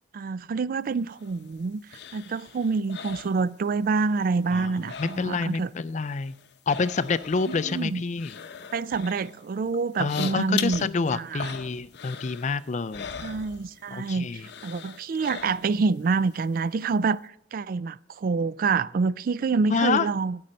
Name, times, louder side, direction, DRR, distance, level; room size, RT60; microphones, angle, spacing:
voice 1, 0.1-1.8 2.1-5.7 7.5-8.0 8.7-11.5 13.2-20.4, right 4 dB, 55° right, 0.3 m, -27 dB
sound 1, 0.9-4.0 4.3-5.6 5.9-14.0 14.4-15.9 16.3-16.4, left 7 dB, 70° left, 0.8 m, -41 dB
voice 2, 5.0-6.3 6.7-8.4 10.0-13.1 13.9-14.5 19.7-20.1, left 4 dB, 40° left, 0.4 m, -27 dB
13.0 x 8.7 x 5.3 m
head